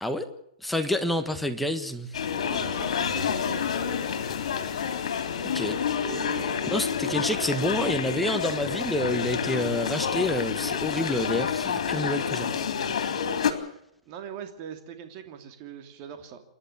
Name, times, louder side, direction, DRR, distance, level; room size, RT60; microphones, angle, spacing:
voice 1, 0.6-2.1 5.5-5.8 6.7-12.5 12.9-13.3, left 1 dB, ahead, 7 dB, 1.5 m, -28 dB
sound 1, 2.1-13.5, left 7 dB, 70° left, 3.6 m, -29 dB
sound 2, 2.3-10.0 10.4-10.6 11.5-11.6, left 9 dB, 35° left, 3.1 m, -43 dB
voice 2, 2.3-3.8 6.0-6.9 7.2-7.7 14.1-16.4, right 8 dB, 35° right, 6 dB, 2.9 m, -41 dB
28.0 x 11.5 x 8.7 m, 0.78 s
hypercardioid pair, 155°, 3 cm